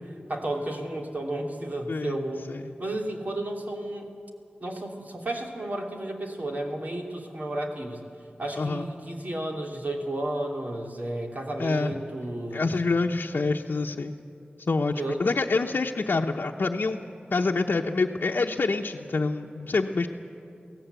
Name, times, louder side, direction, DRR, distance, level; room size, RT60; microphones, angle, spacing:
voice 1, 0.3-2.4 2.8-4.1 4.6-8.0 8.4-12.7 15.0-15.2, right 1 dB, 50° right, 1 dB, 3.0 m, -32 dB
voice 2, 1.9-2.2 2.5-2.7 8.6-8.9 11.6-12.0 12.5-14.2 14.7-17.0 17.3-20.1, left 3 dB, 75° left, -1 dB, 0.8 m, -26 dB
24.0 x 17.0 x 8.2 m, 2.6 s
wide cardioid pair, 75°, 3 cm